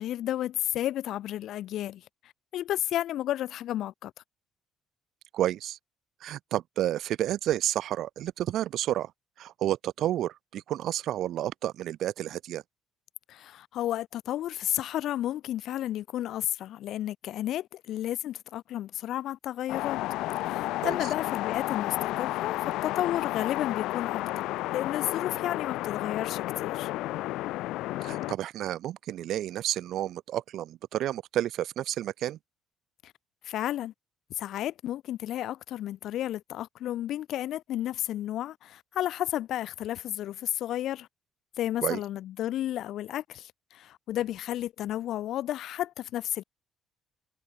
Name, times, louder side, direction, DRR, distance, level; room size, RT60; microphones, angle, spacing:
voice 1, 0.0-2.0 2.5-4.1 13.3-20.0 20.4-24.5 24.7-26.9 33.0-33.1 33.4-33.9 34.4-41.1 41.6-46.4, left 12 dB, 55° left, 0.9 m, -32 dB
voice 2, 5.3-5.8 6.2-9.1 9.4-12.6 20.8-21.0 28.0-32.4 41.8-42.0, right 12 dB, 60° right, 0.6 m, -30 dB
sound 1, 19.7-28.3, left 17 dB, 85° left, 2.6 m, -32 dB
cardioid pair, 170°, 0 cm